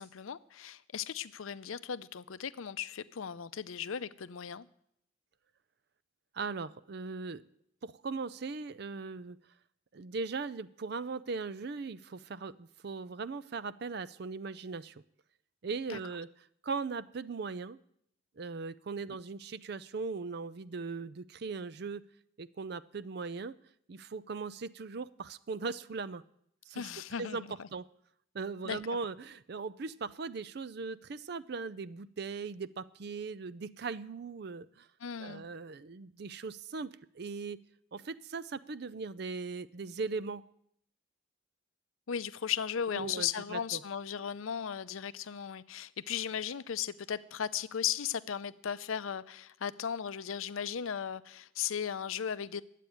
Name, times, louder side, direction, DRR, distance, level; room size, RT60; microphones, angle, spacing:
voice 1, 0.0-4.7 15.9-16.0 26.7-27.7 28.7-28.8 35.0-35.5 42.1-52.6, left 8 dB, 80° left, 15 dB, 0.5 m, -36 dB
voice 2, 6.3-7.4 7.8-9.4 9.9-15.0 15.6-16.3 16.6-17.8 18.4-22.0 22.4-23.6 23.9-26.2 26.7-26.9 27.2-27.9 28.3-34.9 35.2-37.6 37.9-40.4 42.9-43.8, right 4 dB, 50° right, 17 dB, 0.4 m, -39 dB
11.5 x 8.3 x 9.2 m, 0.72 s
head